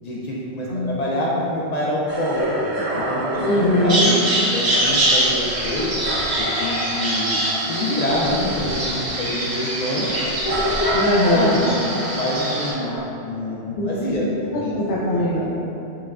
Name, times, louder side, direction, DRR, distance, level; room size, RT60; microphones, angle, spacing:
voice 1, 0.0-2.6 2.9-3.5 3.8-4.3 4.5-5.9 6.4-10.1 10.4-11.0 11.3-14.7 15.0-15.5, left 1 dB, 55° left, -5 dB, 0.4 m, -26 dB
sound 1, 2.1-4.4, right 1 dB, 70° right, 0.3 m, -29 dB
sound 2, 2.1-13.0, right 1 dB, 85° right, 1.7 m, -30 dB
voice 2, 3.4-4.2 10.9-11.7 13.8-13.9 14.7-15.5, left 1 dB, 85° left, -7 dB, 0.9 m, -20 dB
Bird vocalization bird call bird song, 3.9-12.7, right 1 dB, 45° right, 0.7 m, -24 dB
5.9 x 2.2 x 2.3 m, 2.8 s
omnidirectional pair, 1.1 m